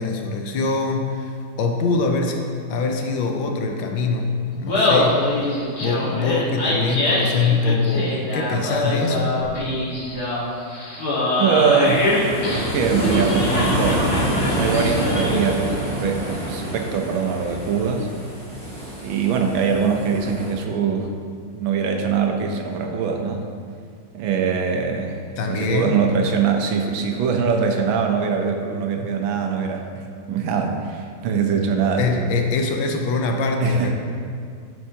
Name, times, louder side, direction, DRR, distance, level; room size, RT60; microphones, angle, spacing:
voice 1, 0.0-4.3 4.5-9.3 25.4-26.0 32.0-33.9, left 3 dB, 80° left, 3 dB, 1.5 m, -23 dB
Laughter, 4.5-15.6, left 2 dB, 55° left, 2.1 m, -24 dB
voice 2, 11.3-14.0 14.6-18.1 18.9-21.1 21.5-23.4 24.1-25.2 25.5-32.3 33.6-33.9, right 6 dB, 85° right, 3 dB, 1.5 m, -22 dB
sound 1, 11.8-20.5, right 1 dB, 25° right, 1.8 m, -27 dB
12.0 x 4.7 x 2.8 m, 2.2 s
omnidirectional pair, 2.1 m